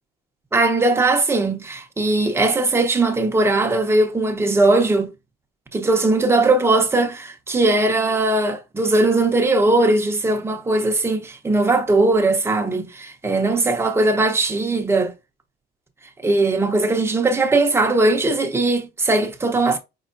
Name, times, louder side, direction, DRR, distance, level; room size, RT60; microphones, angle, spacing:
voice 1, 0.5-5.1 5.7-15.1 16.2-19.8, right 2 dB, 15° right, 0.8 m, -19 dB
5.5 x 3.0 x 2.6 m
cardioid pair, 145°, 18 cm